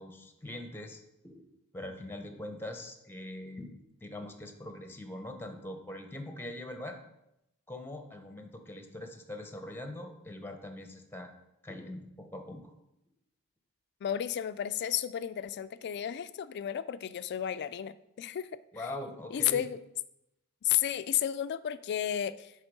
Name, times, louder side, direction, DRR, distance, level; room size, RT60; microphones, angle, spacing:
voice 1, 0.0-1.4 1.7-7.0 7.7-11.3 11.6-12.7 18.7-19.6, left 1 dB, 10° left, 6 dB, 0.6 m, -42 dB
voice 2, 14.0-18.5 19.3-19.8 20.6-22.5, left 10 dB, 50° left, 15 dB, 0.3 m, -32 dB
8.0 x 3.5 x 5.2 m, 0.85 s
head